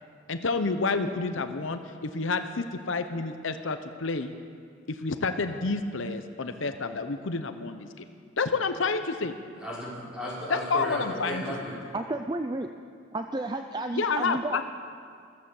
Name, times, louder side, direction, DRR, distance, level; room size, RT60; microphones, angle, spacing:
voice 1, 0.3-4.3 5.0-8.0 8.4-9.4 10.5-11.4 13.9-14.6, left 4 dB, 70° left, 8 dB, 0.8 m, -29 dB
voice 2, 9.6-11.8, left 1 dB, 5° right, -7 dB, 4.6 m, -35 dB
voice 3, 11.9-12.7 13.1-14.6, right 2 dB, 20° right, 6 dB, 0.4 m, -31 dB
14.5 x 14.0 x 7.2 m, 2.2 s
head